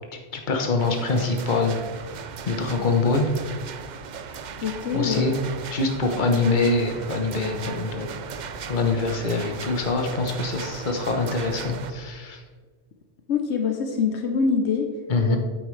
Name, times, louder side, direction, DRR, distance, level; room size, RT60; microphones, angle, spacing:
voice 1, 0.3-1.8 2.5-3.3 4.9-5.3 5.7-8.1 8.7-12.4 15.1-15.4, left 3 dB, 45° left, 3 dB, 1.1 m, -24 dB
sound 1, 0.8-11.9, right 7 dB, 55° right, 0.5 m, -38 dB
sound 2, 1.8-12.0, equal, 10° left, 2.0 m, -45 dB
voice 2, 4.6-5.3 13.3-14.9 15.3-15.4, left 5 dB, 75° left, 4 dB, 1.1 m, -24 dB
9.3 x 8.5 x 3.3 m, 1.5 s
omnidirectional pair, 1.2 m